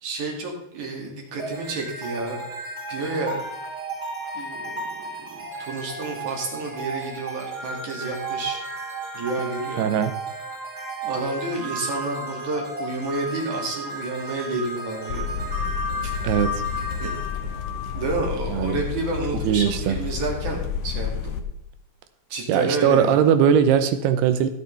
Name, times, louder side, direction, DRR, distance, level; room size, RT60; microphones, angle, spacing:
voice 1, 0.0-2.4 2.9-3.4 4.3-4.8 5.2-8.6 9.1-9.9 11.0-15.3 16.0-16.1 17.0-17.1 17.9-21.4 22.3-23.2, right 2 dB, 50° right, 0 dB, 3.3 m, -29 dB
sound 1, 1.4-18.5, right 1 dB, 20° right, 2.4 m, -34 dB
sound 2, 8.2-12.6, right 2 dB, 30° left, 2.2 m, -42 dB
voice 2, 9.8-10.1 16.2-16.6 18.5-18.8 19.4-20.0 22.5-24.5, right 8 dB, 80° right, 10 dB, 2.6 m, -20 dB
sound 3, 15.1-21.4, left 6 dB, 80° left, 1.9 m, -30 dB
16.0 x 8.5 x 3.3 m, 0.83 s
omnidirectional pair, 4.9 m